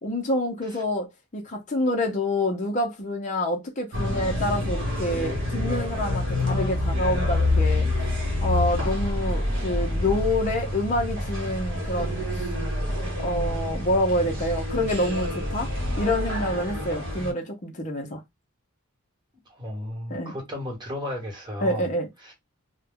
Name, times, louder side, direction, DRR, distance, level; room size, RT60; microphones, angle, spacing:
voice 1, 0.0-7.9 8.4-12.5 13.2-15.7 16.0-18.2 20.1-20.3 21.6-22.1, left 1 dB, 35° left, 0.6 m, -27 dB
sound 1, 3.9-17.3, left 1 dB, 55° right, 0.8 m, -27 dB
voice 2, 19.5-21.9 22.2-22.3, left 1 dB, 20° right, 1.1 m, -34 dB
2.3 x 2.1 x 3.5 m
head